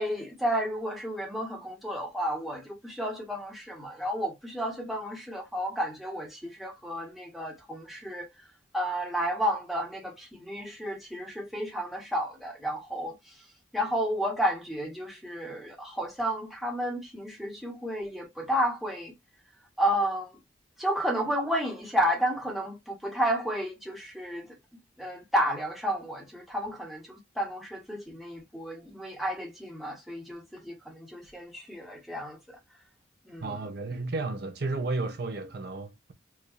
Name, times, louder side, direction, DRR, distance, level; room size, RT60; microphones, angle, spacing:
voice 1, 0.0-8.5 8.7-13.5 13.7-19.1 19.8-20.4 20.8-24.6 25.0-32.6 33.2-33.6, equal, ahead, 1.2 m, -32 dB
voice 2, 33.4-36.1, right 3 dB, 55° right, 0.7 m, -33 dB
4.8 x 2.5 x 2.6 m
head